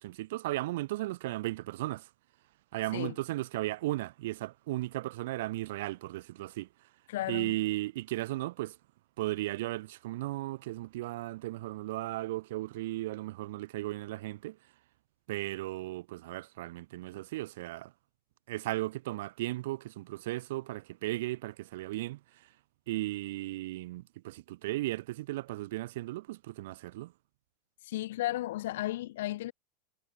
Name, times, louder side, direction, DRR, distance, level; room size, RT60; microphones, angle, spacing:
voice 1, 0.0-2.1 2.7-6.7 7.3-8.8 9.2-14.6 15.3-17.9 18.5-22.5 22.9-27.1, right 17 dB, 60° right, 2.8 m, -36 dB
voice 2, 7.1-7.5 27.8-29.5, left 15 dB, 65° left, 5.6 m, -34 dB
supercardioid pair, 175°, 0 cm